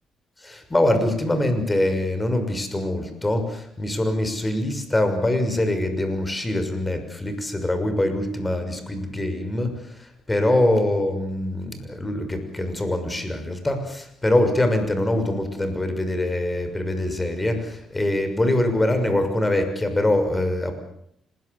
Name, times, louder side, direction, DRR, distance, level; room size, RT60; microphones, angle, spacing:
voice 1, 0.4-9.7 10.0-20.8, left 1 dB, 15° left, 8 dB, 6.3 m, -23 dB
26.5 x 21.0 x 8.2 m, 0.71 s
cardioid pair, 90°, 0 cm